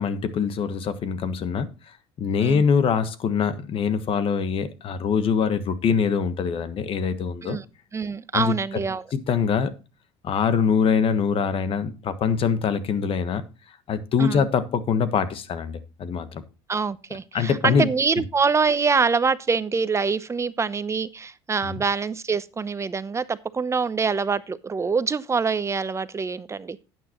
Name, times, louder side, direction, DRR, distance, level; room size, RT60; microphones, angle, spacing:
voice 1, 0.0-1.7 2.2-7.6 8.3-8.5 9.1-9.8 10.2-13.4 13.9-16.4 17.3-17.9 21.6-21.8, left 6 dB, 50° left, 1.4 m, -23 dB
voice 2, 7.9-9.1 14.2-14.5 16.7-26.8, right 5 dB, 25° right, 0.7 m, -25 dB
11.5 x 9.1 x 3.0 m
supercardioid pair, 90°, 12 cm